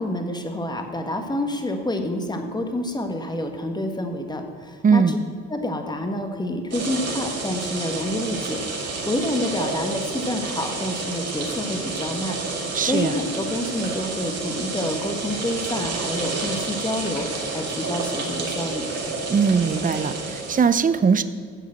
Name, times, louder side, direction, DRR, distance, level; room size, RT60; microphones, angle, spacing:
voice 1, 0.0-5.2 5.5-12.4 12.8-18.8, left 1 dB, 15° left, 5 dB, 1.5 m, -28 dB
voice 2, 4.8-5.2 12.7-13.1 19.3-21.2, right 6 dB, 25° right, 13 dB, 0.6 m, -20 dB
sound 1, 6.7-20.6, right 3 dB, 55° right, 3.0 m, -29 dB
10.0 x 7.2 x 7.7 m, 2.1 s
cardioid pair, 90°, 30 cm